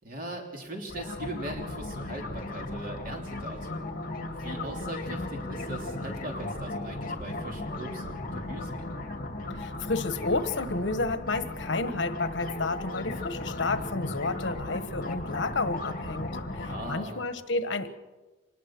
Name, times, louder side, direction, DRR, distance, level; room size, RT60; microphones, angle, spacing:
voice 1, 0.0-3.9 4.4-8.9 16.7-17.3, right 1 dB, 45° right, 1 dB, 3.2 m, -40 dB
sound 1, 0.9-16.9, left 2 dB, 45° left, 2.5 m, -36 dB
voice 2, 9.6-18.0, left 3 dB, 65° left, 10 dB, 1.3 m, -31 dB
25.0 x 20.0 x 6.1 m, 1.1 s
head